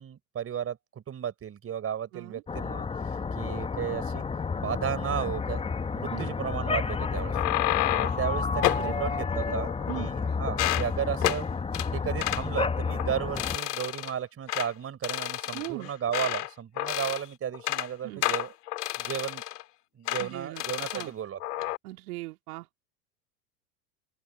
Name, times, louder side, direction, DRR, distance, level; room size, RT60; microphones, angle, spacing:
voice 1, 0.0-4.2 4.6-5.6 5.9-7.4 7.9-11.5 11.9-18.5 19.0-19.4 19.9-21.4, right 9 dB, 30° right, 4.0 m, -34 dB
sound 1, 2.5-13.6, left 5 dB, 10° left, 1.1 m, -31 dB
sound 2, 7.1-8.3 8.6-8.9 9.5-10.2 10.5-10.9 11.2-11.4 11.7-11.9 12.2-12.4 12.9-13.1 13.4-14.1 14.5-14.7 15.0-16.5 16.8-17.3 17.5-17.9 18.2-19.6 20.1-20.3 20.6-21.1 21.4-21.8, left 15 dB, 70° left, 2.2 m, -30 dB
voice 2, 15.5-15.9 18.0-18.3 20.2-20.6 20.9-21.1 21.8-22.7, right 21 dB, 60° right, 2.4 m, -39 dB
open air
hypercardioid pair, 90°, 49 cm